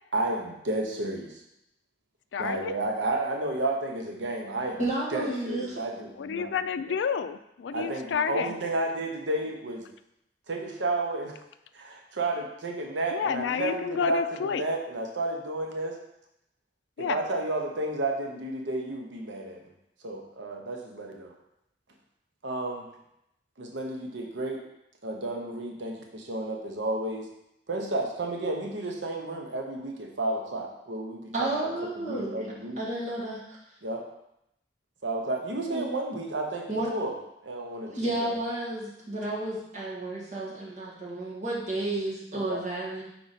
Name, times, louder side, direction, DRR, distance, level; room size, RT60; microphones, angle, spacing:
voice 1, 0.1-1.4 2.4-4.8 5.1-6.5 6.9-7.0 7.7-9.9 10.5-11.4 11.7-16.0 17.0-19.6 20.0-21.3 22.4-22.9 23.6-24.6 25.0-27.3 27.7-32.8 33.8-34.0 35.0-37.1 37.4-38.3 42.3-42.6, right 2 dB, 85° right, 2 dB, 0.8 m, -32 dB
voice 2, 2.3-2.7 6.2-8.5 13.1-14.6 17.0-17.2, left 6 dB, 75° left, 11 dB, 0.3 m, -30 dB
voice 3, 4.8-5.8 31.3-32.4 32.8-33.4 35.7-35.9 36.7-36.9 37.9-43.0, right 2 dB, 45° right, -5 dB, 1.9 m, -31 dB
5.0 x 4.6 x 4.1 m, 0.82 s
head